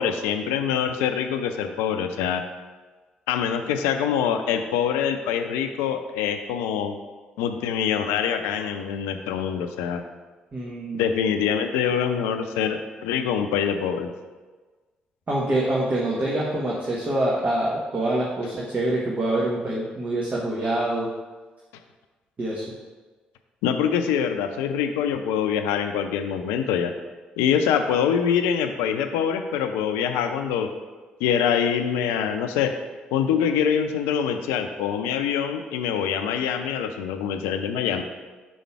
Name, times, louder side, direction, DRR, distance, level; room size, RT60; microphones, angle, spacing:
voice 1, 0.0-2.4 3.3-7.0 7.4-10.0 11.0-14.1 23.6-26.9 27.4-30.7 31.2-32.7 33.1-38.0, left 8 dB, 75° left, 7 dB, 0.5 m, -24 dB
voice 2, 10.5-11.2 15.3-21.1 22.4-22.6, right 1 dB, 40° right, -5 dB, 1.4 m, -25 dB
6.3 x 5.2 x 4.6 m, 1.3 s
figure-of-eight pair, 40°, 4 cm